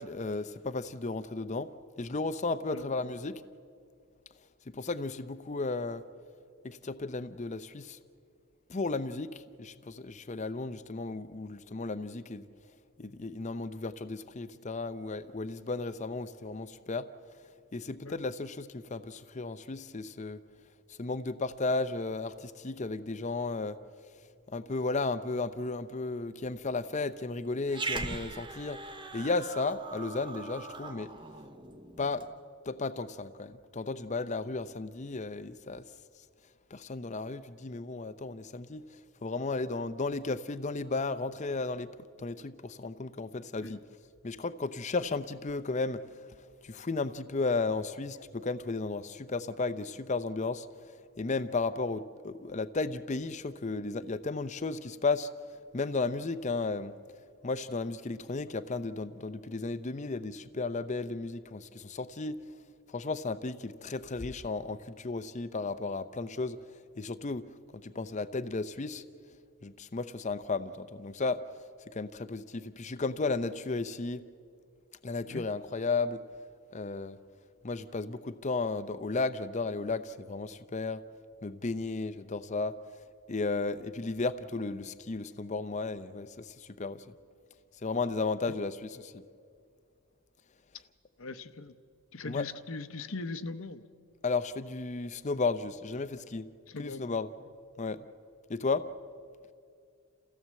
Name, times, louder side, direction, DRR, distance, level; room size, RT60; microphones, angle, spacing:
voice 1, 0.0-1.7 2.0-3.4 4.7-6.0 6.6-8.0 8.7-12.5 13.0-17.1 17.7-20.4 20.9-23.8 24.5-28.8 29.1-31.1 32.0-32.2 32.7-35.8 36.7-41.9 42.2-43.8 44.2-46.0 46.6-55.3 55.7-56.9 57.4-62.4 62.9-67.5 67.7-69.0 69.6-71.4 71.9-74.2 75.0-76.2 76.7-77.2 77.6-81.0 81.4-82.7 83.3-87.1 87.8-89.2 92.2-92.5 94.2-96.5 96.8-97.3 97.8-98.0 98.5-98.8, left 3 dB, 30° left, 12 dB, 0.5 m, -34 dB
Growling, 27.7-32.3, right 3 dB, 20° right, 0.9 m, -40 dB
voice 2, 91.2-91.8 92.1-93.8 96.7-97.2, left 3 dB, 65° left, 12 dB, 0.8 m, -40 dB
28.0 x 16.0 x 7.5 m, 2.3 s
head